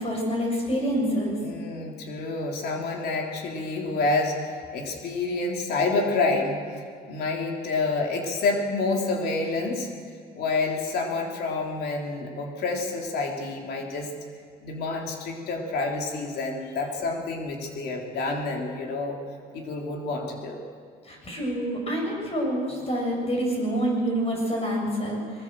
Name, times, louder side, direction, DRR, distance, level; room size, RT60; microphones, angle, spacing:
voice 1, 0.0-1.4 21.0-25.4, equal, 35° left, 0 dB, 7.6 m, -27 dB
voice 2, 1.4-6.6 7.0-9.9 10.4-14.1 14.6-19.2 19.5-20.6, left 3 dB, 70° left, 1 dB, 3.6 m, -28 dB
22.0 x 19.5 x 7.8 m, 2.1 s
cardioid pair, 110°, 17 cm